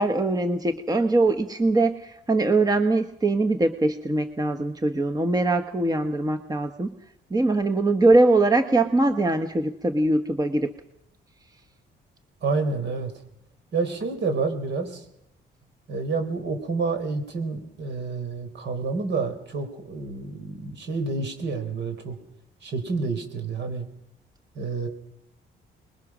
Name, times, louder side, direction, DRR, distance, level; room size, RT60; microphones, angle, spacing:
voice 1, 0.0-6.9 7.3-10.7, right 2 dB, 20° right, 7 dB, 1.2 m, -22 dB
voice 2, 12.4-13.1 13.7-15.1 15.9-22.2 22.6-23.9 24.5-24.9, right 4 dB, 60° right, 7 dB, 4.4 m, -29 dB
25.0 x 21.5 x 6.2 m, 0.81 s
cardioid pair, 90°, 20 cm